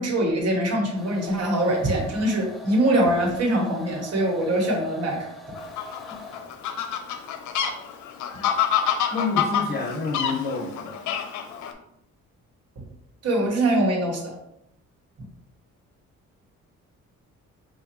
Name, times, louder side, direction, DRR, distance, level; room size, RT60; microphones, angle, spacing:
voice 1, 0.0-5.2 12.8-12.9 13.2-14.3, right 1 dB, 55° right, 0 dB, 1.3 m, -23 dB
sound 1, 1.0-6.6, left 2 dB, ahead, 0.5 m, -42 dB
Fowl, 5.6-11.7, left 8 dB, 75° left, 0.5 m, -27 dB
voice 2, 9.1-11.1, left 4 dB, 35° left, 2 dB, 1.0 m, -28 dB
5.0 x 2.3 x 3.0 m, 0.77 s
cardioid pair, 90°, 30 cm